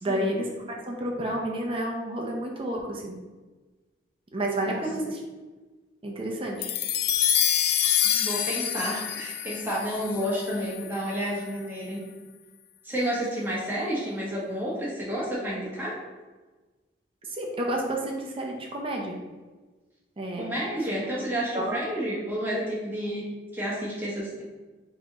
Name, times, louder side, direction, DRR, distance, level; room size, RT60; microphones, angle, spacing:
voice 1, 0.0-3.2 4.3-5.2 6.0-6.7 17.2-19.1 20.2-20.5 21.5-21.8, right 1 dB, 30° right, 0 dB, 0.6 m, -30 dB
sound 1, 6.6-11.1, left 9 dB, 55° left, 0.3 m, -26 dB
voice 2, 8.0-12.0 12.8-16.0 20.3-23.3 23.5-24.4, equal, 10° right, -6 dB, 1.2 m, -30 dB
3.9 x 3.0 x 3.8 m, 1.3 s
head